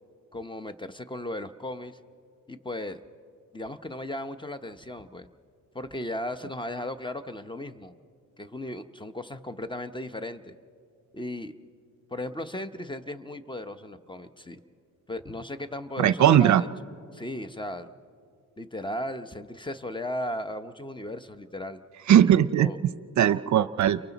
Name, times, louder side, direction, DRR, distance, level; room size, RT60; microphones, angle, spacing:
voice 1, 0.3-2.0 2.5-3.0 3.5-5.3 5.7-7.9 8.4-10.5 11.1-11.5 12.1-14.6 15.1-16.7 17.1-17.9 18.6-21.8 22.6-22.8, left 1 dB, 15° left, 11 dB, 0.8 m, -36 dB
voice 2, 16.0-16.6 22.1-22.7 23.2-24.0, right 10 dB, 60° right, 15 dB, 0.5 m, -19 dB
30.0 x 23.0 x 4.0 m, 2.3 s
cardioid pair, 85°, 32 cm